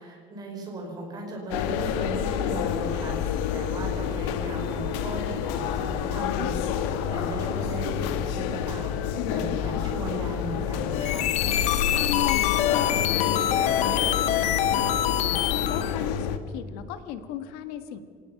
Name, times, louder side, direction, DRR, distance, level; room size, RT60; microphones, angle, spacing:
voice 1, 0.0-11.3, right 2 dB, 25° right, 0 dB, 5.2 m, -37 dB
sound 1, 1.5-16.4, left 8 dB, 90° left, 1.5 m, -28 dB
sound 2, 10.9-15.9, left 12 dB, 45° left, 1.0 m, -25 dB
voice 2, 11.9-15.0 15.4-18.0, left 9 dB, 70° left, 9 dB, 1.6 m, -36 dB
25.5 x 18.0 x 5.9 m, 2.1 s
cardioid pair, 170°, 16 cm